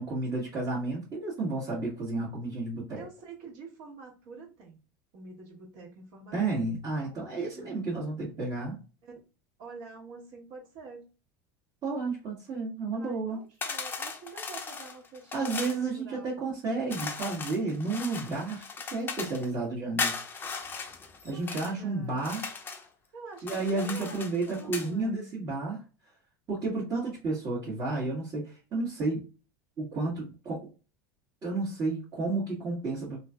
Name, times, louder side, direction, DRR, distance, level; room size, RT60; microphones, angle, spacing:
voice 1, 0.0-3.0 6.3-8.8 11.8-13.4 15.3-20.1 21.2-22.5 23.4-25.8 26.5-29.2 29.8-30.7 31.4-33.2, right 3 dB, 35° right, -6 dB, 1.2 m, -32 dB
voice 2, 3.0-4.8 5.1-7.8 9.0-9.2 9.6-11.1 13.0-15.7 16.0-16.3 21.2-22.1 23.1-25.4, right 4 dB, 65° right, -3 dB, 1.5 m, -47 dB
sound 1, 13.6-15.8 16.9-19.5 20.0-21.7 22.2-22.9 23.4-24.9, left 5 dB, 20° left, 0.5 m, -37 dB
3.0 x 2.6 x 2.2 m, 0.34 s
supercardioid pair, 120°, 11 cm